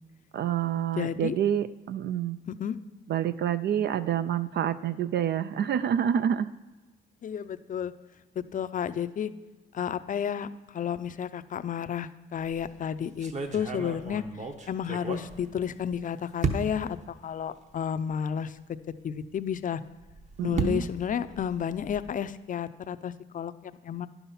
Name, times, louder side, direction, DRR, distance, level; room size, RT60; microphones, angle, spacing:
voice 1, 0.3-2.4 3.1-6.5 20.4-20.8, right 9 dB, 60° right, 13 dB, 0.4 m, -27 dB
voice 2, 1.0-1.4 2.5-2.8 7.2-7.9 8.4-9.3 9.7-14.2 14.7-17.0 17.2-18.6 19.0-19.8 20.4-24.1, left 8 dB, 40° left, 13 dB, 0.5 m, -32 dB
sound 1, 12.4-12.7 13.2-16.0 16.4-17.0 17.7-17.8 18.1-18.2 19.9-22.2, right 4 dB, 35° right, 1.0 m, -34 dB
10.5 x 5.7 x 5.6 m, 1.1 s
cardioid pair, 90°, 20 cm